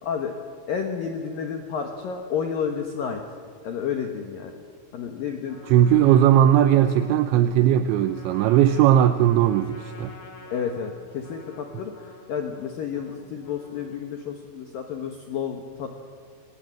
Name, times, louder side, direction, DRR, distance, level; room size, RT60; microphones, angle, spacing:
voice 1, 0.0-0.3 0.7-3.2 3.6-4.5 4.9-5.6 10.5-15.9, left 7 dB, 65° left, 4 dB, 2.3 m, -31 dB
Trumpet, 5.5-14.1, left 1 dB, 45° left, 3.4 m, -48 dB
voice 2, 5.7-10.1, right 11 dB, 80° right, 10 dB, 2.8 m, -18 dB
24.5 x 19.5 x 7.7 m, 2.2 s
omnidirectional pair, 5.8 m